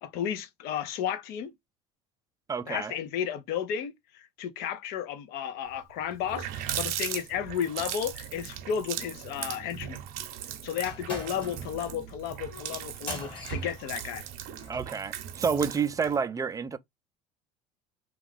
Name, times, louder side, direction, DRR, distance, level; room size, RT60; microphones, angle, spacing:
voice 1, 0.0-1.5 2.7-10.0 10.6-14.3, left 9 dB, 65° left, 0.6 m, -33 dB
voice 2, 2.5-3.0 14.7-16.8, right 6 dB, 20° right, 0.4 m, -29 dB
Water tap faucet, 5.8-5.9 6.1-16.2, right 10 dB, 60° right, 0.6 m, -38 dB
sound 1, 10.8-14.9, left 3 dB, 30° left, 1.4 m, -43 dB
2.4 x 2.3 x 3.3 m
hypercardioid pair, 80°, 17 cm